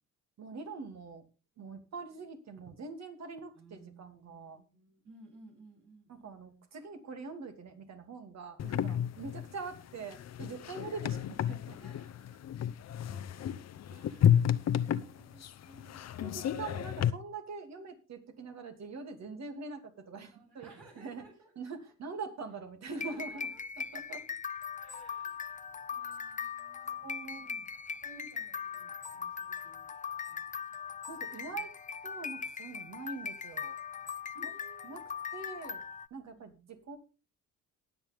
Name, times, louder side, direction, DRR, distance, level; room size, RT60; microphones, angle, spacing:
voice 1, 0.4-1.3 1.6-4.6 6.1-11.8 13.9-14.4 16.2-20.7 21.0-21.2 21.6-23.5 23.8-24.2 27.0-27.6 31.1-31.7 32.0-33.8 34.8-35.0 35.3-35.8 36.1-37.0, right 4 dB, 60° right, 6 dB, 2.7 m, -44 dB
voice 2, 3.5-6.6 10.8-11.1 11.8-12.7 13.1-13.3 13.9-14.5 14.8-16.1 20.3-21.5 21.8-21.9 23.1-23.9 24.8-25.5 25.9-27.6 27.9-29.9 30.3-30.5 31.1-31.6 34.3-35.2 36.3-36.7, right 2 dB, 80° right, 0 dB, 7.6 m, -58 dB
sound 1, 8.6-17.1, left 9 dB, 60° left, 0.8 m, -31 dB
sound 2, 22.8-36.1, left 6 dB, 25° left, 0.5 m, -40 dB
20.0 x 6.9 x 3.5 m, 0.31 s
cardioid pair, 90°, 30 cm